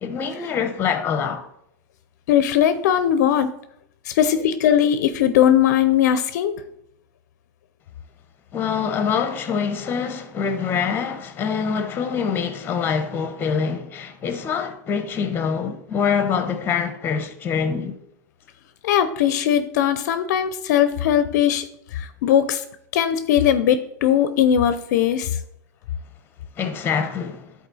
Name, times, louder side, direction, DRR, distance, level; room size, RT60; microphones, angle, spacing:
voice 1, 0.0-1.5 8.5-17.9 26.6-27.4, left 6 dB, 20° left, 0.9 m, -25 dB
voice 2, 2.3-3.5 4.2-6.5 18.8-21.6 22.2-22.6 22.9-25.3, left 10 dB, 65° left, 0.6 m, -19 dB
10.0 x 4.2 x 4.1 m
supercardioid pair, 135°, 10 cm